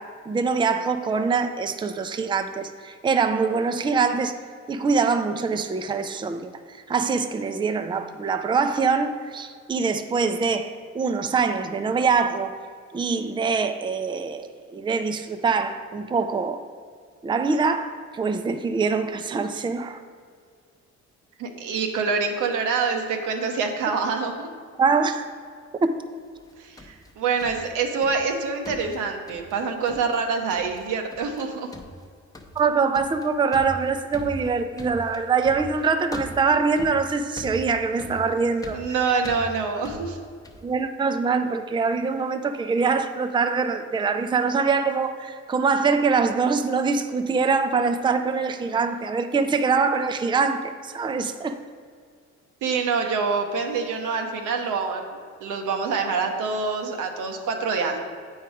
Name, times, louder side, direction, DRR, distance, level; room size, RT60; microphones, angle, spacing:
voice 1, 0.0-4.3 4.7-12.6 12.9-16.6 17.2-20.0 24.8-25.3 25.8-25.9 32.6-38.8 40.6-51.6 53.0-53.2, right 5 dB, 15° right, 8 dB, 0.4 m, -24 dB
voice 2, 21.4-24.5 26.6-31.7 38.7-40.2 52.6-58.0, right 5 dB, 90° right, 4 dB, 0.9 m, -26 dB
sound 1, 26.4-28.3 28.6-29.6 29.9-30.2 30.5-30.8 31.1-31.4 31.7-40.7, equal, 10° left, 0.8 m, -40 dB
8.1 x 4.6 x 4.9 m, 2.1 s
cardioid pair, 90°, 30 cm